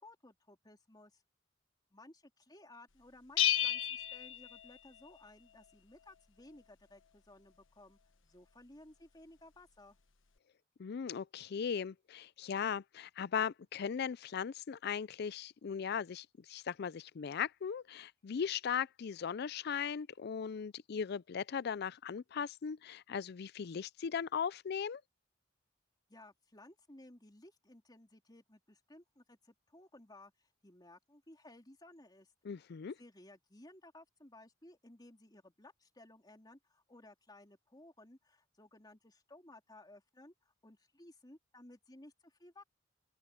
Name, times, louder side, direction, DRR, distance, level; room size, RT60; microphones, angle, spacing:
voice 1, 0.0-1.2 1.9-10.0 26.1-32.3 33.0-42.6, left 1 dB, 20° left, 3.5 m, -58 dB
Bell, 3.4-5.2, left 10 dB, 85° left, 1.2 m, -33 dB
voice 2, 10.8-25.0 32.4-33.0, left 7 dB, 55° left, 0.4 m, -38 dB
open air
head